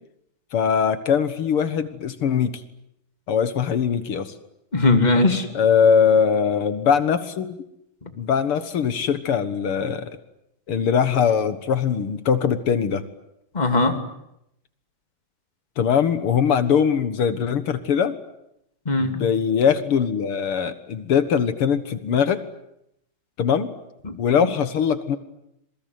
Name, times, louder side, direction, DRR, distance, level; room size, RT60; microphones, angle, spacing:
voice 1, 0.5-2.5 3.3-4.3 5.5-7.6 8.2-10.1 10.7-13.0 15.8-18.2 19.0-22.4 23.4-23.7 24.2-25.2, left 7 dB, 55° left, 11 dB, 1.5 m, -21 dB
voice 2, 4.7-5.5 13.5-14.0 18.8-19.2 24.0-24.5, left 2 dB, 15° left, 6 dB, 2.1 m, -20 dB
27.0 x 22.5 x 9.5 m, 0.81 s
omnidirectional pair, 4.3 m